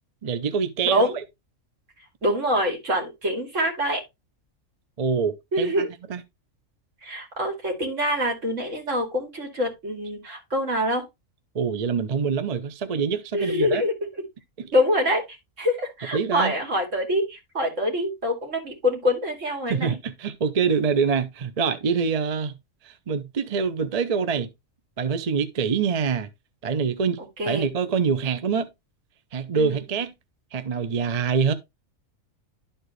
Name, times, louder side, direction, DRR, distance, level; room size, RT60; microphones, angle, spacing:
voice 1, 0.2-1.1 5.0-5.8 6.1-6.2 11.5-13.8 14.6-14.7 16.1-16.5 19.7-22.5 22.8-24.5 25.0-26.3 26.6-27.2 27.5-28.7 29.3-30.1 30.5-31.5, right 6 dB, 40° right, 0.6 m, -25 dB
voice 2, 0.8-1.2 2.2-4.0 5.5-5.9 7.0-11.1 13.3-13.9 14.7-19.9 27.4-27.7 29.5-29.8, equal, 65° right, 2.9 m, -25 dB
12.0 x 4.4 x 3.2 m
omnidirectional pair, 1.4 m